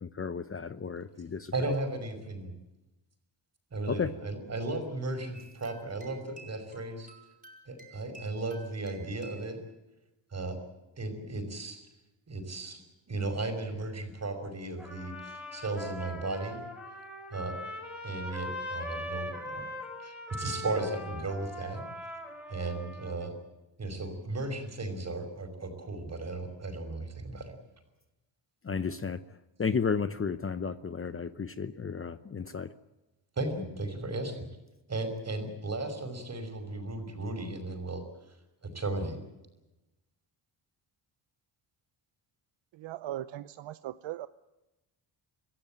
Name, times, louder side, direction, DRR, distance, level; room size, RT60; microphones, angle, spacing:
voice 1, 0.0-1.5 3.9-4.1 28.6-29.2 29.6-32.7, left 5 dB, 30° left, 0.9 m, -33 dB
voice 2, 1.5-2.5 3.7-7.1 7.7-9.6 10.3-10.6 11.0-11.8 12.3-12.8 13.1-16.6 17.3-17.6 18.0-19.7 20.0-21.9 22.5-23.3 23.8-27.5 33.4-34.5 34.9-38.0 38.6-39.2, right 2 dB, 35° right, 5.7 m, -35 dB
sound 1, 5.3-9.5, right 3 dB, 15° right, 6.1 m, -53 dB
Trumpet, 14.8-23.3, left 1 dB, ahead, 7.3 m, -41 dB
voice 3, 42.7-44.3, right 13 dB, 75° right, 0.8 m, -39 dB
25.5 x 15.5 x 9.0 m
cardioid pair, 90°, 47 cm